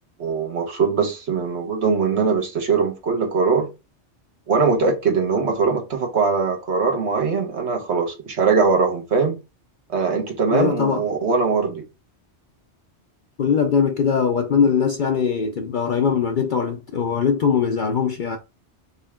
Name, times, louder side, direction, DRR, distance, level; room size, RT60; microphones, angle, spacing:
voice 1, 0.2-3.7 4.5-9.4 9.9-11.8, right 5 dB, 70° right, 1.4 m, -21 dB
voice 2, 10.5-11.0 13.4-18.4, left 6 dB, 55° left, 0.6 m, -21 dB
4.1 x 3.2 x 3.5 m
omnidirectional pair, 1.2 m